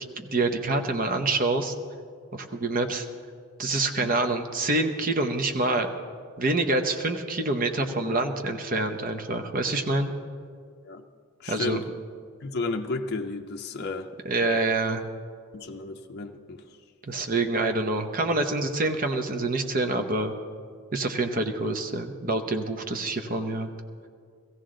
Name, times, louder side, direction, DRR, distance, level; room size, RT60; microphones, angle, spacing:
voice 1, 0.2-1.7 2.3-3.1 3.6-5.9 6.4-10.1 11.5-11.8 14.2-15.0 17.0-20.3 20.9-23.7, right 2 dB, 40° right, 6 dB, 0.8 m, -26 dB
voice 2, 11.4-11.8 12.4-14.1 15.5-16.6, left 3 dB, 45° left, 4 dB, 0.5 m, -32 dB
16.0 x 15.5 x 3.8 m, 2.1 s
head